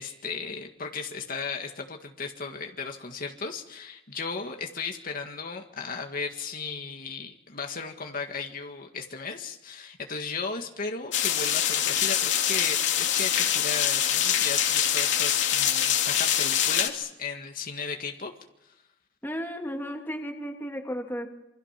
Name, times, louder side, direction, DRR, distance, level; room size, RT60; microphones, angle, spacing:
voice 1, 0.0-18.3, left 4 dB, 50° left, 3 dB, 1.9 m, -35 dB
sound 1, 11.1-16.9, left 10 dB, 70° left, 2.8 m, -24 dB
voice 2, 19.2-21.3, equal, 10° left, 2 dB, 2.6 m, -34 dB
28.0 x 25.5 x 6.0 m, 0.90 s
head